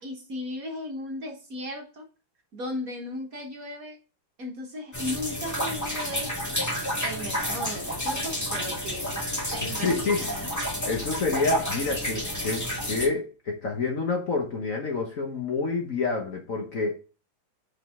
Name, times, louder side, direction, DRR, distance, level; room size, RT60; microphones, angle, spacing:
voice 1, 0.0-2.1 2.5-4.0 4.4-6.6 7.0-9.2 9.5-10.5, left 1 dB, 45° right, 1 dB, 1.6 m, -36 dB
sound 1, 4.9-13.1, equal, 10° left, 1.6 m, -30 dB
voice 2, 9.6-10.2 10.8-16.9, left 4 dB, 50° left, 1 dB, 1.3 m, -28 dB
5.7 x 5.1 x 3.6 m, 0.35 s
omnidirectional pair, 2.3 m